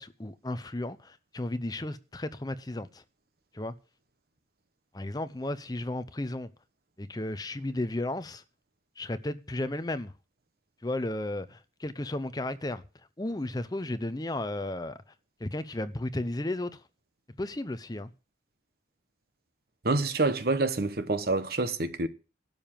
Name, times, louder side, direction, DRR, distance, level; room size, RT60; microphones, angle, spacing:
voice 1, 0.0-3.0 3.5-3.7 4.9-6.5 7.0-8.4 9.0-10.1 10.8-12.8 13.2-15.0 15.4-16.8 17.4-18.1, left 1 dB, 20° left, 0.6 m, -34 dB
voice 2, 19.8-22.1, right 3 dB, 55° right, 1.0 m, -27 dB
12.0 x 6.9 x 7.4 m
head